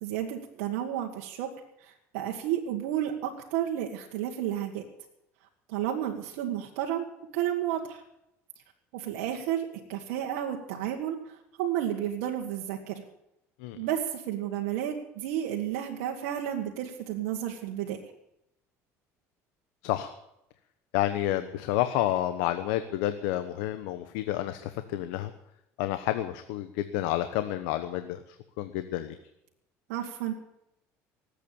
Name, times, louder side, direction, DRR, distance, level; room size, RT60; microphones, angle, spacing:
voice 1, 0.0-1.5 1.8-4.8 5.7-7.1 7.3-8.0 8.9-13.0 13.7-18.0 29.9-30.3, right 11 dB, 80° right, 0 dB, 1.7 m, -32 dB
voice 2, 20.9-25.3 25.8-29.2, left 13 dB, 80° left, 10 dB, 1.0 m, -30 dB
19.0 x 8.5 x 8.7 m, 0.83 s
supercardioid pair, 90°, 7 cm